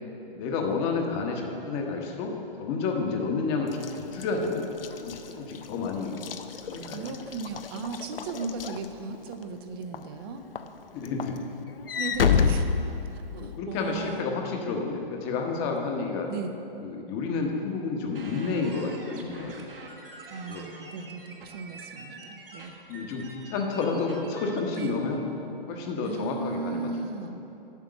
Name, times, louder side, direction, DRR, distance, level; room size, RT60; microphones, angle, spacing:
voice 1, 0.3-2.3 2.6-3.7 4.0-4.7 5.0-6.2 6.6-7.2 10.9-11.4 13.3-16.3 16.8-19.5 20.5-20.7 22.9-25.2 25.7-26.9 27.4-27.5, left 4 dB, 25° left, 2 dB, 1.0 m, -30 dB
Walk footsteps / Slam, 3.7-9.4 9.9-10.2 10.6-13.6, left 6 dB, 75° left, 0.6 m, -29 dB
voice 2, 6.7-10.4 12.0-12.7 13.1-14.3 16.3-16.6 20.3-22.8 24.8-25.0 26.0-27.4, right 4 dB, 25° right, 7 dB, 0.5 m, -36 dB
Untitled Glitch, 18.1-24.9, right 3 dB, 70° right, 1.5 m, -46 dB
8.2 x 5.9 x 7.7 m, 2.9 s
figure-of-eight pair, 130°, 29 cm